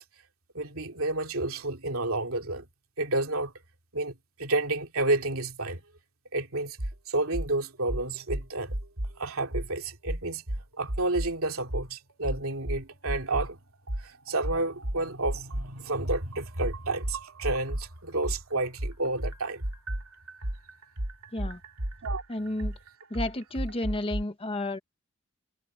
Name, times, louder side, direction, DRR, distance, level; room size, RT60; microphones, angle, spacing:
voice 1, 0.5-2.6 3.0-3.5 3.9-5.8 6.3-6.8 7.1-8.8 9.2-10.4 10.8-13.6 14.0-19.6 22.0-22.2, right 2 dB, 70° right, 2.8 m, -30 dB
sound 1, 6.8-7.0 7.3-7.5 7.9-9.1 9.5-9.7 10.1-11.3 11.7-11.9 12.2-13.5 13.9-17.9 18.2-24.2, right 1 dB, 90° right, 2.6 m, -33 dB
voice 2, 22.3-22.8 23.1-24.8, left 1 dB, 25° left, 1.0 m, -32 dB
head